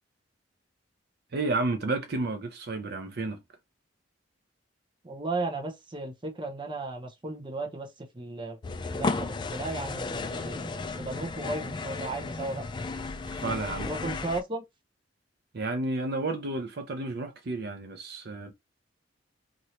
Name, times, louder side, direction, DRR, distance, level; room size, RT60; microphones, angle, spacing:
voice 1, 1.3-3.4 13.3-13.9 15.5-18.5, right 2 dB, 60° right, 0.6 m, -31 dB
voice 2, 5.0-8.6 8.8-12.6 13.9-14.6, right 3 dB, 25° right, 0.7 m, -35 dB
sound 1, 8.6-14.4, left 3 dB, 25° left, 0.3 m, -34 dB
2.8 x 2.6 x 3.0 m
head